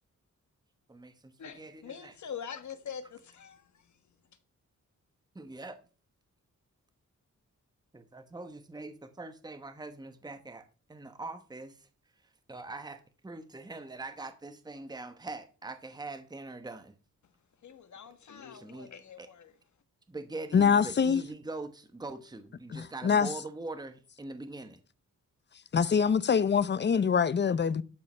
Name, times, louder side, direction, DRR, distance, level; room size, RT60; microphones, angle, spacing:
voice 1, 0.9-2.1 5.3-5.8 7.9-11.7 12.5-16.9 18.5-18.9 19.2-19.3 20.1-24.8, right 2 dB, 15° right, 1.0 m, -43 dB
voice 2, 1.4-4.0 17.6-19.5, left 7 dB, 70° left, 1.4 m, -44 dB
voice 3, 20.5-21.2 22.7-23.3 25.7-27.8, left 6 dB, 35° left, 0.6 m, -24 dB
12.0 x 5.6 x 5.5 m
wide cardioid pair, 115°, 31 cm